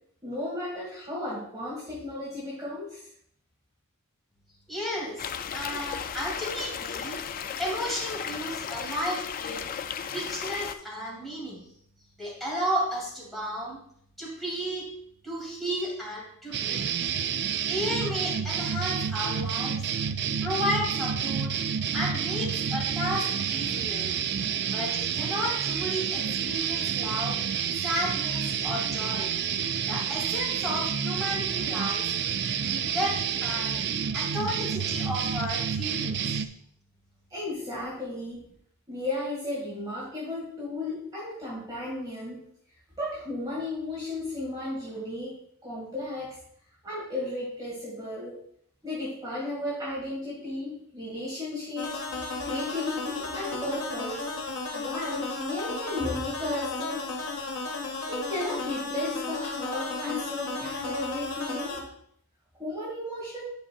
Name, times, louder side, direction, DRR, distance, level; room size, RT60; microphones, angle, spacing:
voice 1, 0.2-3.1 37.3-38.4 38.9-42.4 43.0-45.4 45.6-46.4 46.8-48.4 48.8-52.0 52.4-54.2 54.7-57.1 58.1-61.8 62.6-63.5, left 1 dB, 20° right, -6 dB, 1.7 m, -34 dB
voice 2, 4.7-7.2 7.6-9.6 10.1-11.6 12.2-13.8 14.2-14.9 15.2-17.0 17.7-19.8 20.4-21.5 21.9-24.1 24.7-27.4 27.7-29.3 29.8-32.1 32.6-33.8 34.1-36.4, equal, ahead, -6 dB, 2.7 m, -33 dB
sound 1, 5.2-10.8, left 7 dB, 40° left, 0.3 m, -35 dB
sound 2, 16.5-36.5, right 7 dB, 50° right, 0.4 m, -29 dB
sound 3, 51.8-61.8, left 3 dB, 85° left, 1.9 m, -34 dB
10.0 x 5.4 x 2.4 m, 0.67 s
head